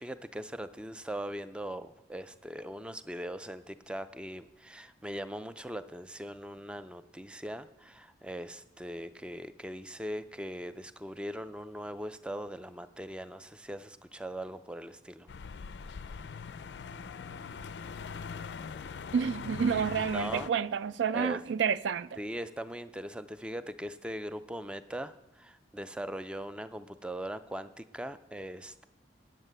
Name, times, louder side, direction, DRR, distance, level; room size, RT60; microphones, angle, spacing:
voice 1, 0.0-15.3 20.1-20.5 21.1-21.4 22.2-28.8, equal, 5° right, 0.3 m, -40 dB
sound 1, 15.3-20.5, left 5 dB, 65° left, 0.4 m, -41 dB
voice 2, 19.1-22.2, right 7 dB, 75° right, 0.4 m, -29 dB
9.2 x 7.9 x 6.6 m
head